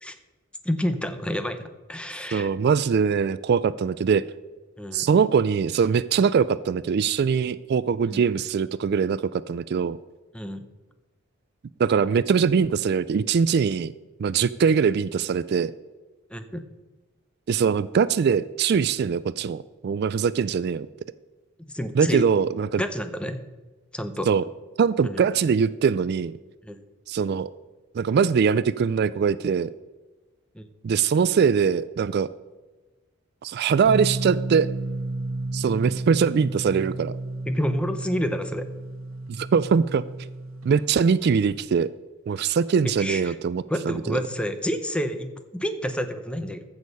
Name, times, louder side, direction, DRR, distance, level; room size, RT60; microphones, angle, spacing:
voice 1, 0.6-2.5 4.8-5.1 8.1-8.2 10.3-10.6 16.3-16.6 21.7-22.2 22.8-23.4 23.9-24.3 25.0-25.2 26.6-26.8 30.5-30.7 37.5-38.6 43.0-43.3 43.7-46.6, equal, 5° left, 9 dB, 0.8 m, -29 dB
voice 2, 2.3-4.2 4.9-10.0 11.8-13.9 14.2-15.7 17.5-20.9 21.9-22.8 24.3-24.4 24.8-26.3 27.1-27.5 27.9-29.7 30.8-32.3 33.4-34.7 35.5-37.1 39.3-40.0 40.6-41.9 42.3-44.2, right 6 dB, 55° right, 17 dB, 0.3 m, -22 dB
sound 1, 33.8-40.7, right 2 dB, 80° right, 1.0 m, -32 dB
14.5 x 6.5 x 5.4 m, 1.2 s
head